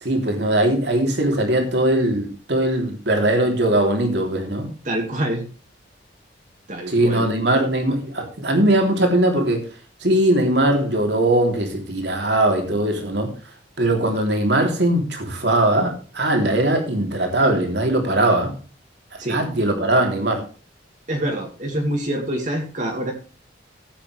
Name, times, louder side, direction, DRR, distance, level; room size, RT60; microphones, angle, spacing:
voice 1, 0.0-4.7 6.9-9.7 10.0-13.3 13.8-18.5 19.3-20.4, right 1 dB, 65° right, 3 dB, 3.3 m, -20 dB
voice 2, 4.8-5.5 6.7-7.3 19.2-19.4 21.1-23.1, right 1 dB, 40° right, 1 dB, 2.2 m, -26 dB
14.5 x 8.8 x 3.3 m, 0.36 s
head